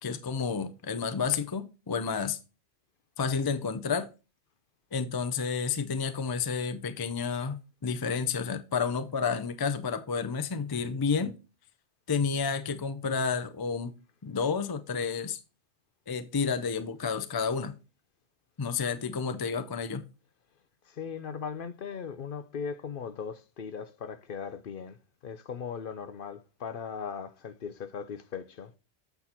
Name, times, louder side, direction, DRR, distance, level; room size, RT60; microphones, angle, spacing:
voice 1, 0.0-2.4 3.2-4.1 4.9-11.4 12.1-13.9 14.2-15.4 16.1-17.7 18.6-20.0, left 5 dB, 30° left, 0.4 m, -30 dB
voice 2, 20.9-25.0 25.2-28.7, left 6 dB, 55° left, 0.8 m, -38 dB
8.1 x 4.1 x 4.3 m
omnidirectional pair, 1.1 m